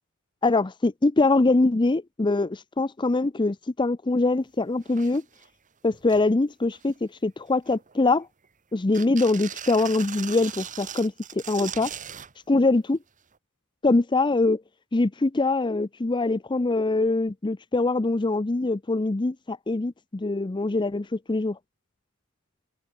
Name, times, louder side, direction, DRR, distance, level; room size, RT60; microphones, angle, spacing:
voice 1, 0.4-5.2 5.8-8.3 8.7-11.9 12.5-13.0 13.8-14.6 14.9-21.6, left 2 dB, 20° left, 0.5 m, -23 dB
sound 1, 4.5-4.6 4.8-5.5 5.9-6.3 6.7-7.2 7.7-8.5 8.9-12.3 13.3-13.4, right 9 dB, 35° right, 1.6 m, -39 dB
open air
head